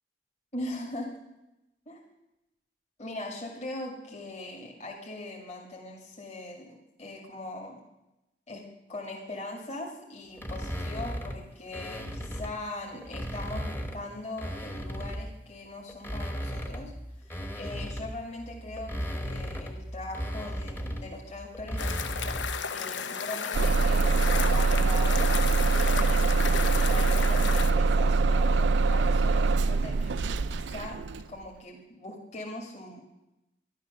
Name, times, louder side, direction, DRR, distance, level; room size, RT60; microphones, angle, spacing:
voice 1, 0.5-1.1 1.9-2.0 3.0-7.8 8.5-8.6 8.9-16.9 17.2-21.9 22.7-25.6 25.8-31.0 31.3-33.1, left 2 dB, 40° left, -1 dB, 2.3 m, -40 dB
sound 1, 10.4-12.6 13.0-15.4 15.9-22.6, equal, 10° left, 1.1 m, -36 dB
sound 2, 21.8-27.7, left 6 dB, 80° left, 0.8 m, -33 dB
Bus / Engine starting, 23.5-31.3, right 3 dB, 75° right, 0.5 m, -24 dB
12.0 x 11.5 x 6.7 m, 0.91 s
head